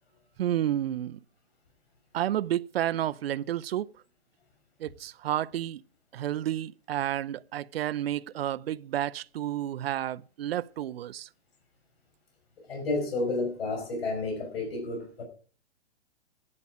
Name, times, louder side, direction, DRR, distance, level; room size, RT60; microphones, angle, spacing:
voice 1, 0.4-1.2 2.1-3.9 4.8-5.8 6.1-11.3, right 12 dB, 60° right, 0.5 m, -31 dB
voice 2, 12.7-15.2, left 2 dB, 60° left, 5.6 m, -31 dB
11.5 x 11.0 x 4.9 m
hypercardioid pair, 170°, 33 cm